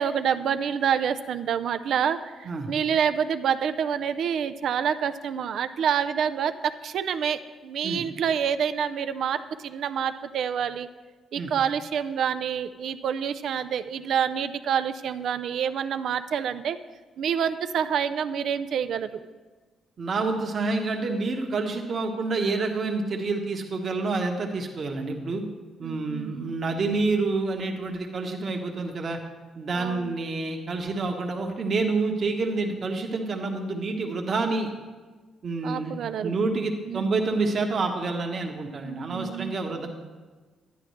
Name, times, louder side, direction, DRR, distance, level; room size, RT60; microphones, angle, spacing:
voice 1, 0.0-10.9 11.3-16.8 17.2-19.2 25.8-26.3 29.7-30.1 35.6-36.3 36.9-37.1 38.8-39.6, right 8 dB, 70° right, 11 dB, 0.4 m, -27 dB
voice 2, 20.0-25.4 25.8-29.2 29.6-34.7 35.4-35.9 36.2-39.9, right 3 dB, 50° right, 2 dB, 1.3 m, -28 dB
10.5 x 9.9 x 3.2 m, 1.3 s
cardioid pair, 90°, 0 cm